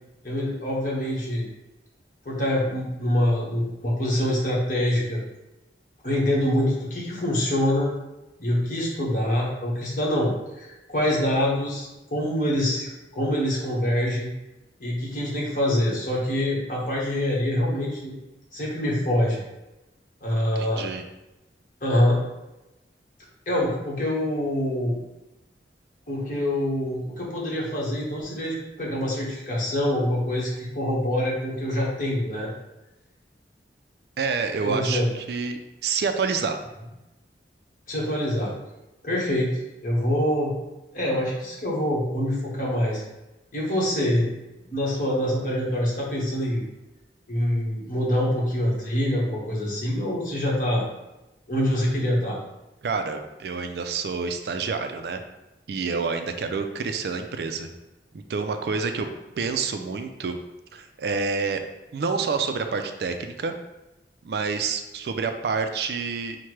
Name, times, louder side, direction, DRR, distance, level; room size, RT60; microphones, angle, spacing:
voice 1, 0.2-1.4 2.2-5.2 6.0-7.9 8.4-10.3 10.5-14.3 14.8-18.1 18.5-19.4 20.2-20.8 21.8-22.2 23.5-25.0 26.1-32.5 34.6-35.1 37.9-38.5 39.0-39.5 39.8-40.5 40.9-43.0 43.5-44.3 44.7-46.6 47.3-50.8 51.5-52.4, left 1 dB, 45° left, -5 dB, 1.3 m, -25 dB
voice 2, 20.3-21.0 34.2-36.6 52.8-55.2 55.7-57.7 58.3-59.1 59.4-60.4 60.7-61.6 61.9-63.5 64.2-66.4, right 5 dB, 65° right, 7 dB, 0.4 m, -28 dB
5.7 x 2.2 x 3.1 m, 0.98 s
head